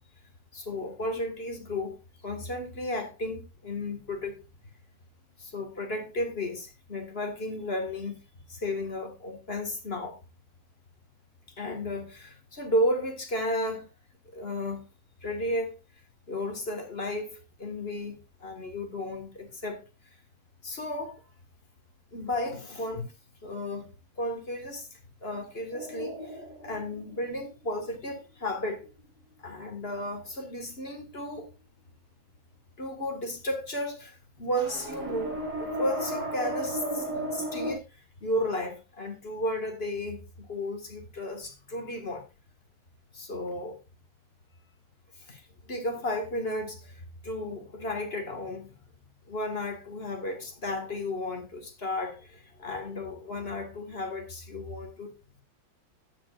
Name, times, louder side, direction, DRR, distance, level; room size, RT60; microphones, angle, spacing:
voice 1, 0.5-2.0 2.2-4.4 5.4-8.2 8.5-10.2 11.6-13.9 14.3-14.8 15.2-15.8 16.3-19.8 20.6-21.2 22.1-23.1 23.4-23.9 24.2-24.9 25.2-28.8 29.4-31.5 32.8-42.3 43.1-43.8 45.2-48.7 49.3-55.1, left 1 dB, 30° left, 1.7 m, -33 dB
sound 1, 25.7-28.1 34.6-37.7, right 1 dB, 50° right, 3.7 m, -34 dB
13.0 x 9.0 x 2.4 m
omnidirectional pair, 2.3 m